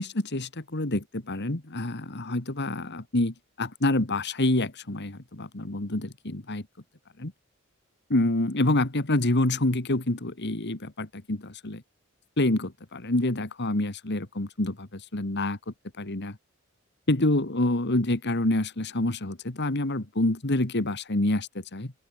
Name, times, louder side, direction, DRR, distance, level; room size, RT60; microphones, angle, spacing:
voice 1, 0.0-6.6 7.2-7.3 8.1-11.8 12.4-16.4 17.1-21.9, left 1 dB, 55° left, 2.1 m, -27 dB
open air
head